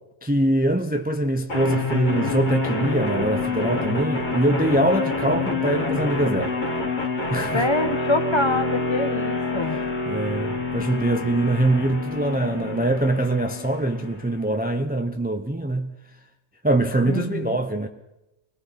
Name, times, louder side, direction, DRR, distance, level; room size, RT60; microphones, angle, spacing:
voice 1, 0.2-6.5 7.3-7.7 10.1-15.9 16.6-17.9, right 1 dB, 10° right, 0.8 m, -23 dB
sound 1, 1.5-14.5, left 3 dB, 45° left, 2.3 m, -27 dB
voice 2, 7.5-9.8 17.1-17.6, left 2 dB, 25° left, 1.3 m, -25 dB
25.0 x 20.0 x 5.9 m
omnidirectional pair, 1.1 m